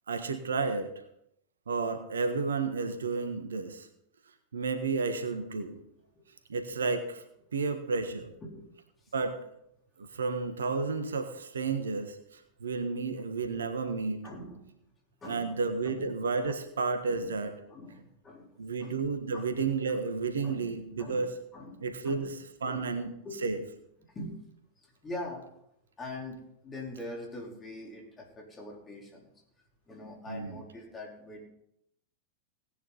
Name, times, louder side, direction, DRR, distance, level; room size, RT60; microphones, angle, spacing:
voice 1, 0.1-0.9 1.7-3.9 4.5-5.8 6.5-7.2 7.5-8.3 9.1-9.4 10.0-14.2 15.2-17.5 18.6-21.3 21.8-23.2 23.4-23.6 30.3-30.6, right 4 dB, 70° right, 8 dB, 1.4 m, -32 dB
voice 2, 14.2-14.6 15.2-16.0 17.1-17.3 17.7-19.0 19.3-19.6 19.9-20.0 20.4-20.7 21.0-22.3 22.7-23.0 23.2-23.4 24.1-24.3 24.8-25.5 26.0-29.3 29.9-31.4, left 1 dB, 20° left, -1 dB, 4.3 m, -43 dB
17.5 x 10.0 x 4.2 m, 0.77 s
figure-of-eight pair, 90°, 0 cm